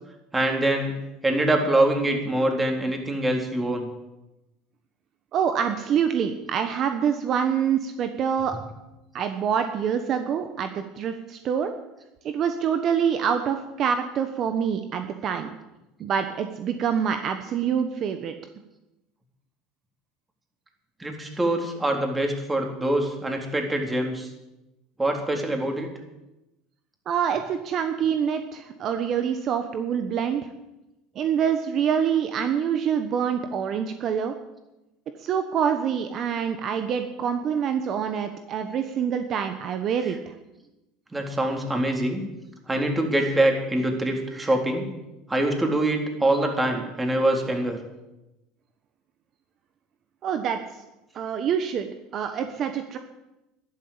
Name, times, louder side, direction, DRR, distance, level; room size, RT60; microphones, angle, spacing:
voice 1, 0.3-0.9 1.2-3.9 21.0-24.3 25.0-25.9 41.1-42.2 42.7-44.9 45.3-47.8, right 1 dB, 15° right, 3 dB, 3.7 m, -24 dB
voice 2, 5.3-8.6 9.1-11.8 12.2-15.5 16.0-18.3 27.1-30.5 31.1-34.3 35.2-40.3 50.2-50.8 51.1-53.0, right 8 dB, 50° right, 8 dB, 1.2 m, -26 dB
12.0 x 11.0 x 8.8 m, 0.96 s
hypercardioid pair, 85°, 0 cm